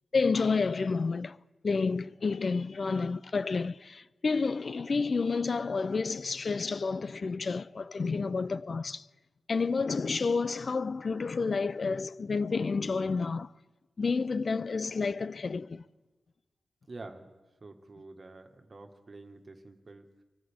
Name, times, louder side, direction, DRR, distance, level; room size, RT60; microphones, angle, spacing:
voice 1, 0.1-1.4 1.6-9.1 9.5-13.5 14.0-15.8, left 4 dB, 50° left, 0.4 m, -30 dB
voice 2, 16.9-17.3 17.6-20.2, right 2 dB, 40° right, 1.6 m, -48 dB
25.0 x 14.0 x 3.6 m
cardioid pair, 80°, 0 cm